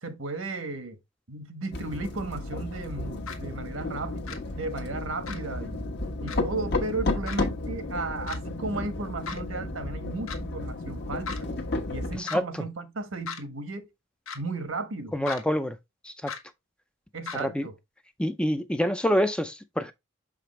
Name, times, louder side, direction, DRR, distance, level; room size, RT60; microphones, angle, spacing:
voice 1, 0.0-1.0 1.3-5.9 6.2-11.5 11.9-13.9 14.3-15.2 17.1-17.8, right 3 dB, 75° right, 1.2 m, -35 dB
sound 1, 1.7-12.2, left 2 dB, 55° left, 1.1 m, -33 dB
sound 2, 3.3-3.4 4.3-4.4 5.3-5.4 6.3-6.4 7.3-7.4 8.3-8.4 9.3-9.4 10.3-10.4 11.3-11.4 12.3-12.4 13.3-13.4 14.3-14.4 15.3-15.4 16.3-16.4 17.3-17.4, left 5 dB, 80° left, 1.2 m, -36 dB
voice 2, 15.1-15.8 16.0-16.3 17.4-17.7 18.2-19.9, equal, 5° left, 0.4 m, -26 dB
6.8 x 5.1 x 3.1 m
head